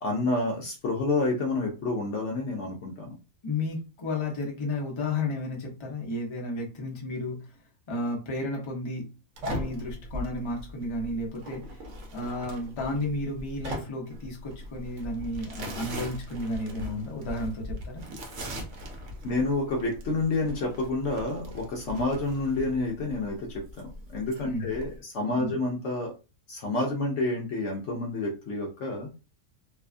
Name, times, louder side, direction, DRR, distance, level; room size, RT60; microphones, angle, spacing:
voice 1, 0.0-3.2 19.2-26.1 26.5-29.1, left 2 dB, 65° left, 0.8 m, -29 dB
voice 2, 3.4-7.4 7.9-9.0 9.5-11.8 12.1-18.0 24.4-24.7 25.4-25.6, left 2 dB, 30° left, 0.5 m, -32 dB
sound 1, 9.4-25.0, equal, 60° right, 0.9 m, -40 dB
2.7 x 2.3 x 2.4 m
omnidirectional pair, 1.5 m